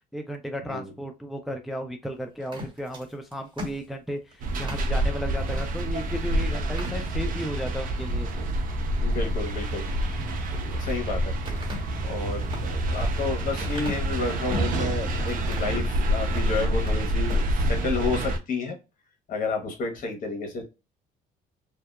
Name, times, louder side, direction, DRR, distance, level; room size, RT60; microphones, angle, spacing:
voice 1, 0.1-8.3, equal, ahead, 4 dB, 0.3 m, -34 dB
sound 1, 2.4-4.9 5.5-5.7 6.0-6.1 6.6-7.5 8.0-8.5 10.3-11.0 11.4-14.8 15.3-15.8 16.2-17.0 17.2-17.5, left 1 dB, 25° right, 1.1 m, -40 dB
sound 2, 4.4-18.4, right 1 dB, 55° right, 0.6 m, -27 dB
voice 2, 9.0-9.9 10.6-11.4 12.0-18.8 19.3-20.6, left 3 dB, 55° left, 3 dB, 1.1 m, -31 dB
2.7 x 2.2 x 2.2 m, 0.27 s
cardioid pair, 110°, 17 cm